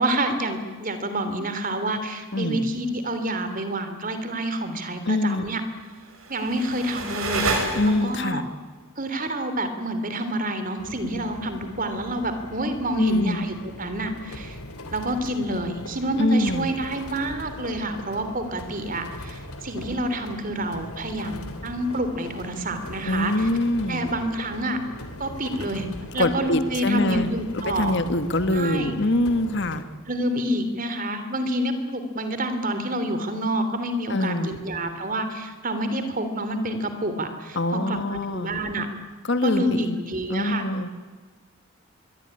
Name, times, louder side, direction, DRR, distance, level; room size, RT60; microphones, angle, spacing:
voice 1, 0.0-5.6 6.3-7.4 7.8-8.4 9.0-14.6 14.9-23.3 23.9-24.8 25.2-27.9 28.5-28.9 30.1-38.9 39.4-40.6, right 1 dB, 40° right, 9 dB, 3.1 m, -28 dB
voice 2, 2.3-2.7 5.1-5.5 7.7-8.4 12.9-13.4 16.2-16.7 23.0-24.0 26.2-27.3 27.5-29.8 34.1-34.6 37.5-38.5 39.2-40.0 40.3-40.9, left 1 dB, 55° left, 10 dB, 1.6 m, -24 dB
sound 1, 6.0-8.3, right 3 dB, 75° right, 6.1 m, -29 dB
sound 2, 10.8-29.8, left 1 dB, 85° left, 3.2 m, -40 dB
25.0 x 23.0 x 10.0 m, 1.4 s
head